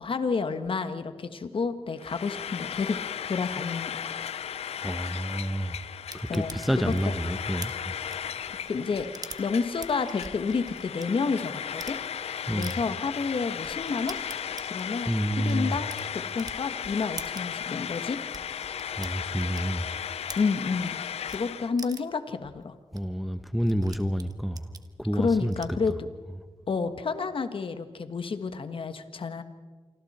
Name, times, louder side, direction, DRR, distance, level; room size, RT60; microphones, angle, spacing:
voice 1, 0.0-3.0 3.2-4.1 6.3-6.6 7.0-7.1 8.6-9.1 9.4-12.0 12.4-14.2 14.7-15.1 15.4-18.2 20.4-21.0 21.3-22.7 25.1-26.1 26.7-29.4, left 4 dB, 60° left, 9 dB, 1.5 m, -30 dB
Frying (food), 2.0-21.7, left 8 dB, 90° left, 0.6 m, -36 dB
voice 2, 4.8-5.8 6.1-7.9 12.5-12.8 15.1-15.8 19.0-19.9 22.9-24.6 25.0-25.5, equal, ahead, 9 dB, 0.9 m, -29 dB
sound 1, 6.1-11.1 11.6-12.0 12.6-12.8 13.2-13.3 13.6-20.9 21.3-21.4 21.8-22.2 22.6-22.7 22.9-23.0 23.3-25.9, right 3 dB, 40° right, 1.5 m, -45 dB
27.5 x 25.0 x 4.4 m, 1.5 s
cardioid pair, 85°, 10 cm